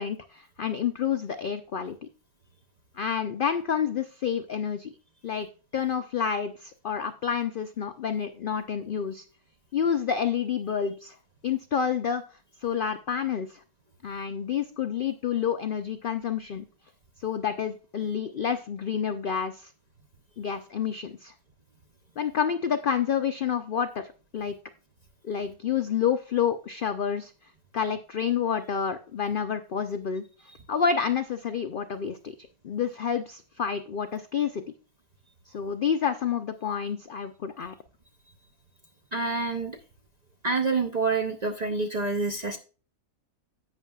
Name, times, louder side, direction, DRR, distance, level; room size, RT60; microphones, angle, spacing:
voice 1, 0.0-2.0 3.0-4.9 5.2-5.5 5.7-9.2 9.7-11.2 11.4-12.2 12.6-13.6 14.0-16.6 17.2-19.7 20.4-21.3 22.2-24.6 25.2-27.3 27.7-30.2 30.7-32.3 32.6-34.6 35.5-37.7, left 7 dB, 80° left, 9 dB, 0.4 m, -29 dB
voice 2, 39.1-39.8 40.4-42.6, right 3 dB, 45° right, 4 dB, 0.5 m, -27 dB
11.0 x 8.2 x 2.3 m, 0.37 s
omnidirectional pair, 1.6 m